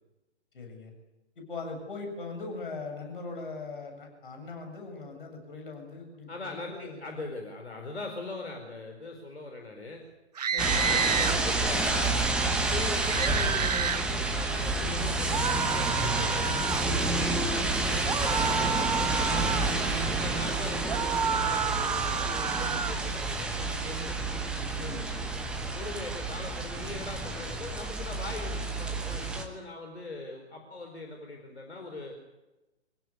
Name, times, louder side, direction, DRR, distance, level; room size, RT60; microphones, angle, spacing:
voice 1, 0.5-0.9 1.4-7.0 10.5-11.3 20.6-20.7 24.8-25.2, left 3 dB, 50° left, 4 dB, 7.5 m, -40 dB
voice 2, 6.3-10.0 10.8-17.4 17.9-24.1 25.7-32.1, left 2 dB, 65° left, 3 dB, 4.6 m, -40 dB
sound 1, 10.4-11.4 13.0-14.0 15.3-16.9 18.0-19.7 20.9-23.0, right 7 dB, 35° right, 0.7 m, -30 dB
sound 2, 10.6-29.4, right 2 dB, ahead, 1.1 m, -29 dB
25.0 x 17.0 x 8.6 m, 1.1 s
figure-of-eight pair, 135°, 35 cm